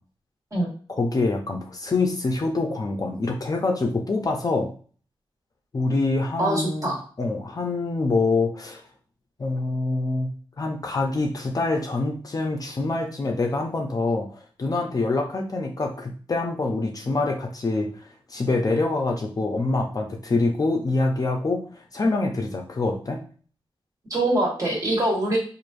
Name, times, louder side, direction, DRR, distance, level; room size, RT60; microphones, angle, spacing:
voice 1, 0.9-4.7 5.7-8.8 9.4-10.3 10.6-21.6 21.9-23.2, left 3 dB, 40° left, 2 dB, 0.6 m, -25 dB
voice 2, 6.4-7.0 24.1-25.4, right 1 dB, 35° right, -2 dB, 1.4 m, -23 dB
4.6 x 2.6 x 2.5 m, 0.42 s
wide cardioid pair, 120°, 10 cm